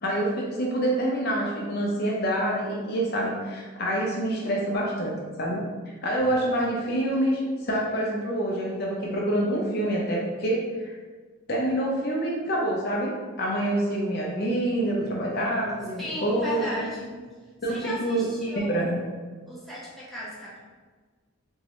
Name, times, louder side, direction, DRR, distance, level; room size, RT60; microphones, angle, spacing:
voice 1, 0.0-5.1 5.4-5.6 6.0-10.9 11.5-16.6 17.6-18.3 18.5-19.1, right 1 dB, 50° left, -3 dB, 0.6 m, -26 dB
voice 2, 15.7-17.1 17.7-19.0 19.5-20.6, left 1 dB, ahead, -8 dB, 0.7 m, -36 dB
3.5 x 2.1 x 3.0 m, 1.4 s
head